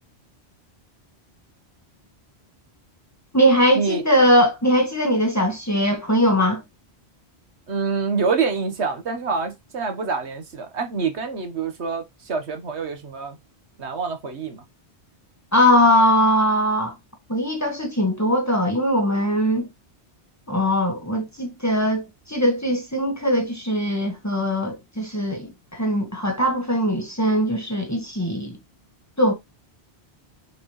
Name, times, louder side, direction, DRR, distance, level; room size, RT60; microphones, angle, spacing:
voice 1, 3.3-6.6 15.5-16.9 17.3-19.7 20.5-28.5 29.2-29.3, equal, 15° left, 1.6 m, -20 dB
voice 2, 7.7-13.4 13.8-14.6, right 4 dB, 85° right, 1.5 m, -26 dB
6.9 x 4.7 x 3.2 m
omnidirectional pair, 1.1 m